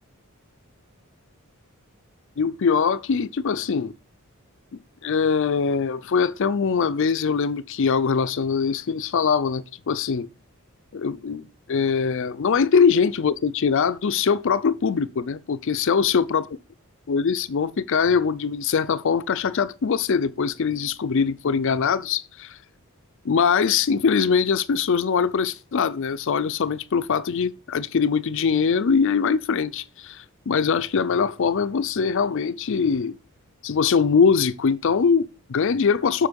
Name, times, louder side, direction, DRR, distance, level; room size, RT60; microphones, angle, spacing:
voice 1, 2.4-3.9 4.7-10.3 10.9-16.6 17.1-22.6 23.2-33.2 33.6-36.3, left 6 dB, 60° left, 0.5 m, -22 dB
8.1 x 5.9 x 5.1 m
head